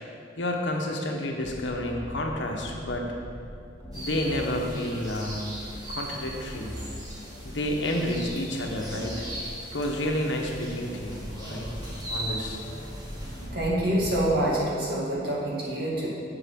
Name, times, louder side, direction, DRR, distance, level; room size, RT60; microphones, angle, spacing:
voice 1, 0.4-3.1 3.9-5.5 5.9-6.8 7.4-9.3 9.7-11.7 12.1-12.6, left 1 dB, 75° left, 1 dB, 1.1 m, -30 dB
sound 1, 1.4-14.3, equal, 10° left, 2.4 m, -41 dB
sound 2, 3.9-13.5, right 1 dB, 20° right, 1.7 m, -40 dB
voice 2, 13.5-16.1, right 1 dB, 55° right, -5 dB, 2.2 m, -26 dB
8.0 x 7.1 x 5.3 m, 2.4 s
head